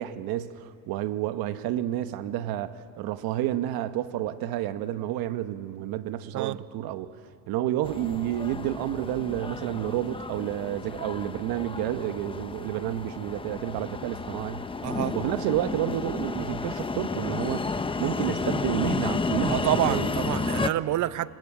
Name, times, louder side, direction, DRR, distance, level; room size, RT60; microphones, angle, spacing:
voice 1, 0.0-7.1 7.5-14.6 15.1-20.1, right 13 dB, 70° right, 1.0 m, -30 dB
sound 1, 7.8-20.7, left 4 dB, 15° left, 0.8 m, -32 dB
voice 2, 14.8-15.2 19.5-21.3, right 14 dB, 50° right, 0.8 m, -27 dB
28.5 x 21.0 x 8.9 m
cardioid pair, 110°, 37 cm